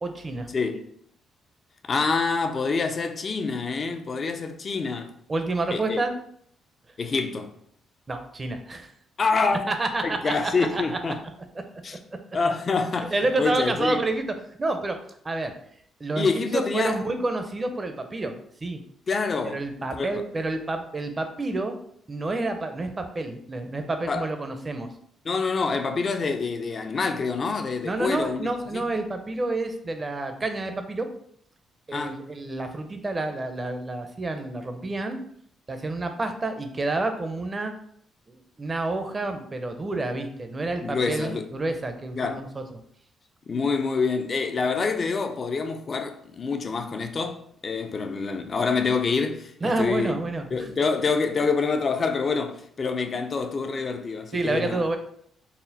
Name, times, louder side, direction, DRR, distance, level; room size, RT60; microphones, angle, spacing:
voice 1, 0.0-0.5 5.3-6.1 8.1-8.9 9.7-11.1 13.0-15.0 15.2-15.5 16.0-18.8 19.4-21.7 22.1-24.9 27.8-31.1 31.9-35.2 35.7-37.7 38.3-42.6 49.6-50.7 54.3-55.0, right 2 dB, 30° right, 0.5 m, -29 dB
voice 2, 0.5-0.9 1.8-5.1 5.7-6.0 7.0-7.5 9.2-9.7 10.0-11.2 11.8-12.0 12.3-13.1 13.4-14.0 16.1-17.0 19.1-19.6 19.9-20.2 24.1-24.3 25.3-28.5 28.7-28.8 31.9-32.2 40.8-41.5 42.2-42.4 43.5-50.1 50.5-54.8, left 4 dB, 40° left, 0.5 m, -26 dB
4.1 x 2.0 x 4.0 m
cardioid pair, 90°, 0 cm